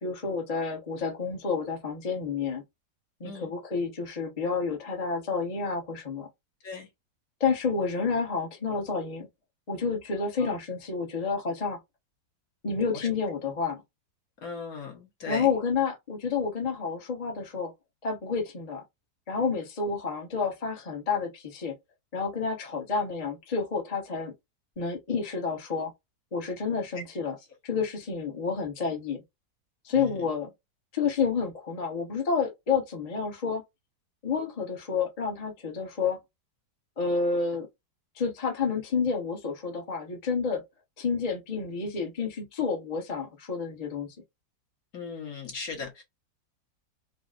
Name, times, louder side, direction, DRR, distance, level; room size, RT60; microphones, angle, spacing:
voice 1, 0.0-2.6 3.2-6.3 7.4-9.3 9.7-11.8 12.6-13.8 15.3-17.7 18.0-18.8 19.3-21.7 22.1-24.3 24.8-25.9 26.3-27.3 27.6-29.2 29.8-30.5 30.9-33.6 34.2-36.2 37.0-37.7 38.1-40.6 41.0-44.1, left 5 dB, 30° left, 0.8 m, -29 dB
voice 2, 14.4-15.5 26.9-27.0 29.9-30.3 44.9-46.0, left 4 dB, 60° left, 1.6 m, -38 dB
4.0 x 2.1 x 2.4 m
omnidirectional pair, 1.9 m